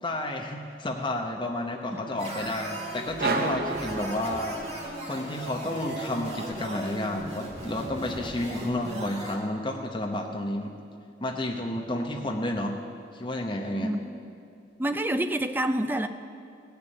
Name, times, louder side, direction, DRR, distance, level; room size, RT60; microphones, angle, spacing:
voice 1, 0.0-10.8 11.2-12.8 13.1-13.9, left 1 dB, 25° left, 2 dB, 0.9 m, -31 dB
sound 1, 1.8-6.4, left 1 dB, 50° left, 0.9 m, -46 dB
sound 2, 2.2-9.4, right 1 dB, 35° right, 2.1 m, -38 dB
sound 3, 3.2-4.9, right 3 dB, 55° right, 1.1 m, -30 dB
voice 2, 13.8-14.2 14.8-16.1, right 1 dB, 10° right, 8 dB, 0.5 m, -27 dB
17.0 x 6.9 x 9.0 m, 2.4 s
head